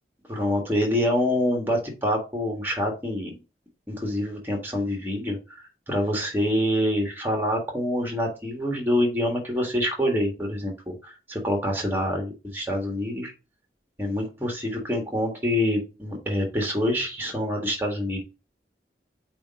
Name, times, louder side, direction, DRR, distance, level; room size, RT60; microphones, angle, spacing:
voice 1, 0.3-3.3 3.9-5.4 5.9-13.3 14.0-18.2, left 1 dB, 10° right, 1 dB, 1.7 m, -26 dB
8.4 x 3.0 x 4.2 m, 0.31 s
head